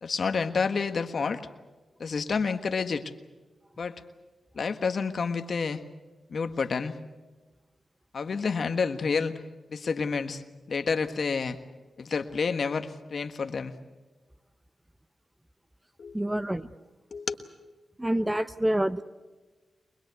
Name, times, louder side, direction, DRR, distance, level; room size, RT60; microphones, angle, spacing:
voice 1, 0.0-1.4 2.0-3.1 3.8-4.0 4.5-5.8 6.3-6.9 8.1-9.3 9.7-10.4 10.7-11.6 12.0-13.7 16.0-16.2 17.1-17.3, left 5 dB, 60° left, 8 dB, 1.4 m, -29 dB
voice 2, 16.1-16.7 18.0-19.0, right 1 dB, 15° right, 12 dB, 0.8 m, -27 dB
23.5 x 21.0 x 8.2 m, 1.2 s
cardioid pair, 75°, 0 cm